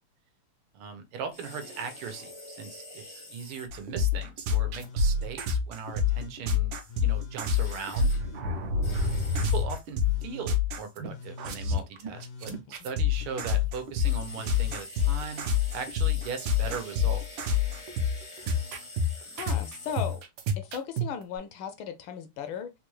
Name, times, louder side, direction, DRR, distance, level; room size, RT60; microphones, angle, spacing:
voice 1, 0.7-6.7 7.0-8.1 9.4-15.5 15.7-17.4, right 6 dB, 85° right, 1.7 m, -39 dB
sound 1, 1.3-3.7 7.4-8.2 8.8-9.6 14.0-20.2, left 1 dB, 40° left, 0.4 m, -45 dB
sound 2, 3.7-11.1 11.4-21.1, left 5 dB, 70° right, 1.4 m, -27 dB
Telephone, 4.8-5.3 5.8-6.4 6.8-7.4 7.9-8.5 8.9-9.5 10.0-10.5 11.0-11.6 12.1-12.6 13.1-13.7 14.2-15.8 16.0-16.8 17.3-17.8 18.4-18.9 19.4-19.9 21.1-21.2, left 2 dB, 90° left, 2.0 m, -47 dB
voice 2, 19.3-20.2 20.6-22.7, left 8 dB, 75° left, 1.3 m, -36 dB
4.5 x 2.3 x 3.1 m
omnidirectional pair, 2.4 m